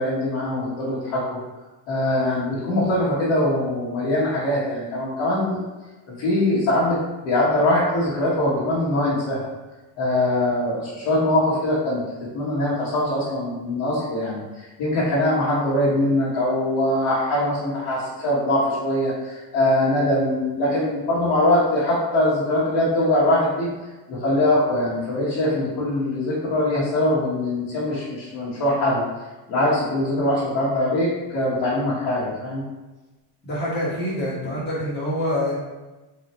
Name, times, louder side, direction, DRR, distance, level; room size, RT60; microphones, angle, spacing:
voice 1, 0.0-1.4 1.9-5.6 6.1-7.0 7.2-9.4 10.0-12.0 12.3-23.7 24.1-29.0 29.5-32.6, left 1 dB, 55° left, -11 dB, 1.4 m, -22 dB
voice 2, 33.4-35.6, left 1 dB, 20° left, -7 dB, 1.4 m, -26 dB
3.9 x 3.1 x 3.0 m, 1.2 s
cardioid pair, 160°, 48 cm